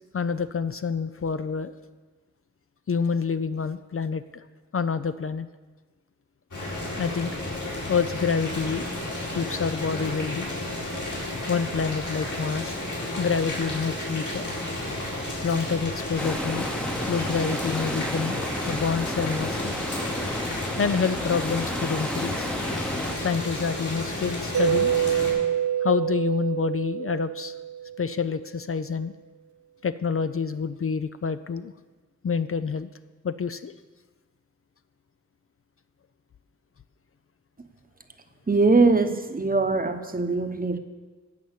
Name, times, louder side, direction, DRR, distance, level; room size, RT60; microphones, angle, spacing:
voice 1, 0.1-1.7 2.9-4.4 4.7-5.5 7.0-7.3 7.9-8.9 9.3-10.5 11.5-12.8 13.2-14.5 15.4-16.7 17.1-18.4 18.7-19.7 20.8-22.5 23.2-24.9 25.8-27.5 28.0-29.1 29.8-31.7 32.2-32.9 33.2-33.7, left 5 dB, 50° left, 12 dB, 0.5 m, -27 dB
Boiling, 6.5-25.3, left 1 dB, 80° left, 4.5 m, -32 dB
sound 1, 16.2-23.2, equal, 5° left, 0.9 m, -32 dB
Mallet percussion, 24.5-28.3, right 9 dB, 75° right, 0.5 m, -26 dB
voice 2, 38.5-40.8, right 3 dB, 30° right, 8 dB, 1.0 m, -22 dB
15.5 x 5.6 x 8.0 m, 1.3 s
wide cardioid pair, 105°, 30 cm